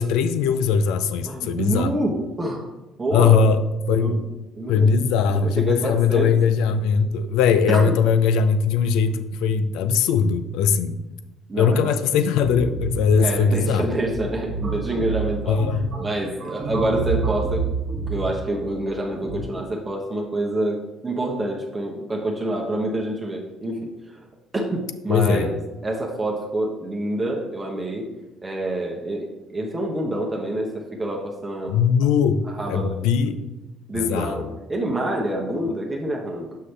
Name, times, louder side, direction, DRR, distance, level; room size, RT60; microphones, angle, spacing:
voice 1, 0.0-1.9 3.1-3.6 3.9-4.2 4.7-11.0 11.5-13.9 15.5-15.9 25.1-25.5 31.7-32.4 32.7-33.4 33.9-34.5, left 6 dB, 85° left, 11 dB, 0.4 m, -20 dB
voice 2, 1.2-2.7 3.0-3.4 4.0-4.2 4.6-5.0 5.3-6.4 7.7-7.8 11.5-12.0 13.2-15.6 16.0-17.7 18.1-23.8 24.5-25.5 25.8-28.0 28.4-32.1 32.6-33.3 33.9-36.5, right 1 dB, 20° right, -1 dB, 1.0 m, -27 dB
sound 1, 12.4-19.4, right 4 dB, 40° right, 1.4 m, -29 dB
6.3 x 5.7 x 3.3 m, 1.0 s
cardioid pair, 100°, 0 cm